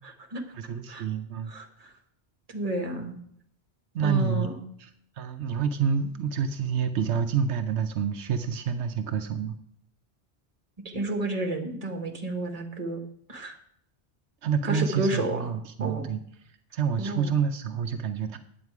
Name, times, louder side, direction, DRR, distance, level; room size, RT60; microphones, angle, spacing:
voice 1, 0.6-1.5 3.9-4.5 4.8-4.9 5.2-9.6 14.4-16.2 16.7-18.4, right 6 dB, 85° right, 7 dB, 1.0 m, -28 dB
voice 2, 1.5-1.9 2.5-3.1 4.0-4.6 10.8-13.0 13.3-13.6 14.6-15.5 15.8-16.1 17.0-17.4, right 2 dB, 35° right, 4 dB, 1.4 m, -31 dB
9.6 x 8.1 x 4.7 m, 0.69 s
omnidirectional pair, 1.1 m